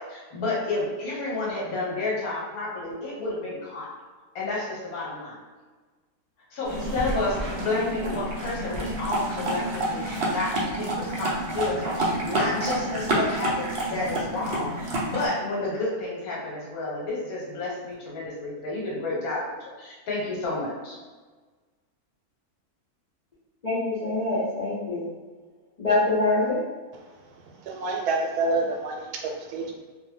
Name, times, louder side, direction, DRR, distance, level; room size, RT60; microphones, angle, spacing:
voice 1, 0.0-3.9 4.3-5.4 6.5-21.0, left 2 dB, 70° left, -5 dB, 1.3 m, -31 dB
sound 1, 6.6-15.3, right 1 dB, 60° right, 0.6 m, -29 dB
voice 2, 23.6-25.0 25.8-26.6, left 2 dB, 55° left, -10 dB, 0.4 m, -24 dB
voice 3, 27.6-29.7, right 3 dB, 85° right, 1 dB, 1.1 m, -27 dB
2.6 x 2.1 x 3.1 m, 1.4 s
omnidirectional pair, 1.6 m